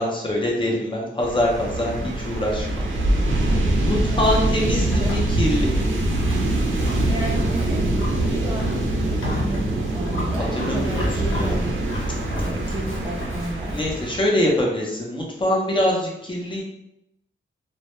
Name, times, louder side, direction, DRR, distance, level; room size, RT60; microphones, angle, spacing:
voice 1, 0.0-2.8 3.8-5.9 10.5-11.1 11.3-11.5 13.7-16.6, left 1 dB, 25° left, -2 dB, 0.6 m, -24 dB
sound 1, 1.2-14.2, right 1 dB, 70° right, 0.5 m, -24 dB
Livestock farm animals working animals, 2.2-13.9, left 1 dB, 80° left, 0.8 m, -34 dB
voice 2, 3.7-5.1 7.0-7.8 8.2-11.8 12.4-13.8, right 1 dB, 15° right, -2 dB, 0.5 m, -34 dB
2.1 x 2.1 x 2.9 m, 0.82 s
wide cardioid pair, 115°, 21 cm